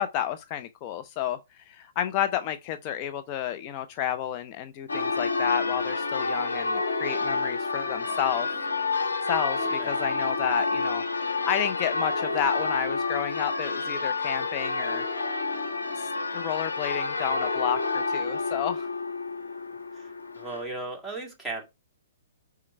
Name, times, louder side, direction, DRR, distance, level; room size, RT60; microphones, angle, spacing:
voice 1, 0.0-1.4 1.7-8.5 9.2-15.1 16.0-18.9, left 10 dB, 35° left, 0.5 m, -31 dB
Church bell, 4.9-20.6, left 3 dB, 80° left, 1.4 m, -29 dB
voice 2, 9.6-10.0 19.9-20.1 20.4-21.6, right 2 dB, ahead, 1.9 m, -36 dB
4.8 x 4.4 x 5.4 m
hypercardioid pair, 125°, 0 cm